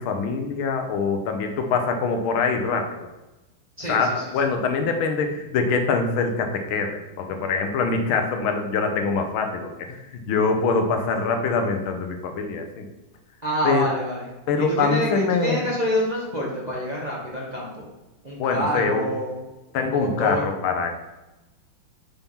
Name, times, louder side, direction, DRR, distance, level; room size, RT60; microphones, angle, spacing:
voice 1, 0.0-3.1 3.9-10.0 10.3-12.9 13.6-13.9 14.5-15.7 18.4-19.1 19.7-20.9, left 4 dB, 90° left, 5 dB, 1.6 m, -24 dB
voice 2, 13.4-14.2 14.6-17.8 18.2-19.4 19.9-20.5, equal, 30° right, -4 dB, 0.9 m, -27 dB
5.8 x 3.6 x 5.5 m, 1.0 s
omnidirectional pair, 2.3 m